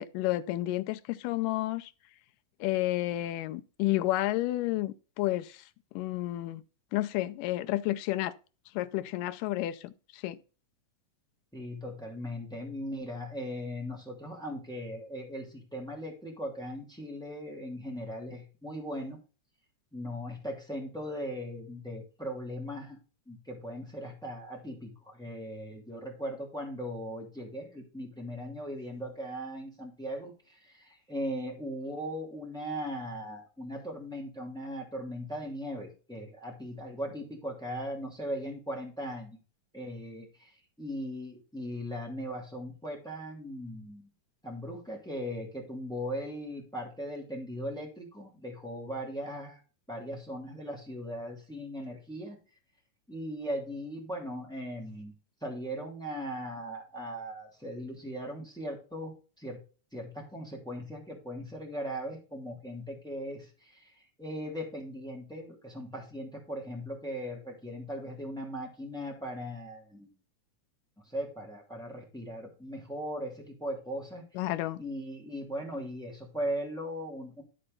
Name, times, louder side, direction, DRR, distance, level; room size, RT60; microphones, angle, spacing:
voice 1, 0.0-1.9 2.6-5.6 6.0-6.6 6.9-8.3 8.8-10.4 74.4-74.8, left 16 dB, 85° left, 2.2 m, -31 dB
voice 2, 11.5-19.2 19.9-23.0 23.3-39.4 39.7-40.5 40.8-44.1 44.4-49.6 49.9-52.4 53.1-55.1 55.4-59.6 59.9-63.9 64.2-70.1 71.1-74.2 74.8-77.4, equal, ahead, 1.9 m, -38 dB
13.0 x 4.3 x 3.9 m
omnidirectional pair, 3.8 m